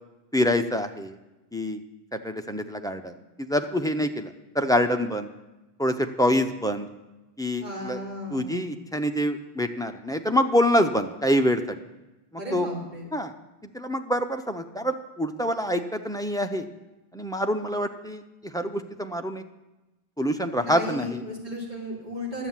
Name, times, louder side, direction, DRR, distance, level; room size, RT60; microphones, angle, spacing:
voice 1, 0.3-1.2 1.5-1.8 2.1-5.3 5.8-6.9 7.4-8.0 8.3-11.8 12.5-12.7 13.1-13.3 13.7-16.7 17.1-19.4 20.2-21.2, equal, 5° left, 6 dB, 0.4 m, -26 dB
voice 2, 7.6-8.7 12.4-13.1 20.5-22.5, left 1 dB, 45° right, -5 dB, 3.5 m, -35 dB
11.0 x 8.1 x 7.3 m, 1.0 s
omnidirectional pair, 1.0 m